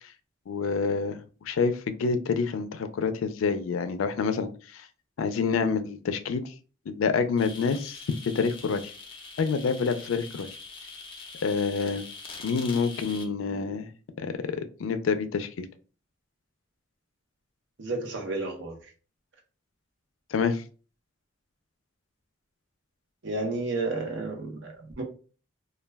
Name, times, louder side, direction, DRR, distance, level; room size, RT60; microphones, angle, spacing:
voice 1, 0.5-4.9 5.2-6.5 6.9-8.0 8.3-8.8 9.4-10.5 11.4-12.0 12.4-13.9 14.2-15.7 20.3-20.6, left 5 dB, 85° left, 0.4 m, -27 dB
sound 1, 7.4-13.3, left 4 dB, 25° left, 0.4 m, -43 dB
voice 2, 17.8-18.8 23.2-25.0, right 2 dB, 65° right, 0.7 m, -31 dB
2.2 x 2.2 x 3.3 m
head